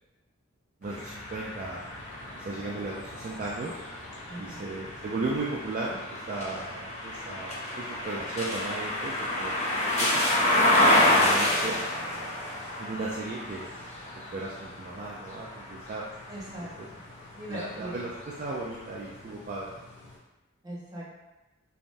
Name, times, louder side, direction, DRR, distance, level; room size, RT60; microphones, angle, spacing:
sound 1, 0.8-20.2, left 2 dB, 85° left, 0.6 m, -49 dB
voice 1, 0.8-1.8 2.3-3.8 4.4-9.5 10.0-10.2 10.5-11.8 12.8-13.7 14.3-16.0 16.8-16.9 17.5-19.8, right 2 dB, 40° right, -5 dB, 0.3 m, -36 dB
sound 2, 0.9-16.8 17.4-18.6, left 1 dB, 30° left, 0.4 m, -29 dB
voice 2, 4.3-4.7 16.3-16.7 17.3-17.9 20.6-21.2, right 1 dB, 20° right, -7 dB, 0.7 m, -40 dB
3.2 x 2.0 x 2.6 m, 1.0 s
head